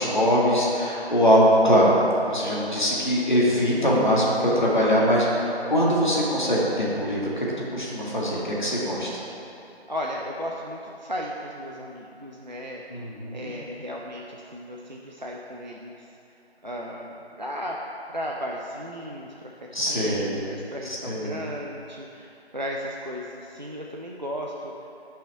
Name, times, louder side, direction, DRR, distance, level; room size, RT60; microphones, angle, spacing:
voice 1, 0.0-1.9 2.3-7.5 7.7-9.1 12.9-13.5 19.7-20.5 21.1-21.4, equal, 45° left, -5 dB, 1.8 m, -22 dB
voice 2, 9.9-12.8 13.3-16.1 16.6-17.8 18.1-24.9, equal, 45° right, -2 dB, 0.5 m, -35 dB
10.0 x 5.6 x 4.4 m, 2.8 s
figure-of-eight pair, 170°, 32 cm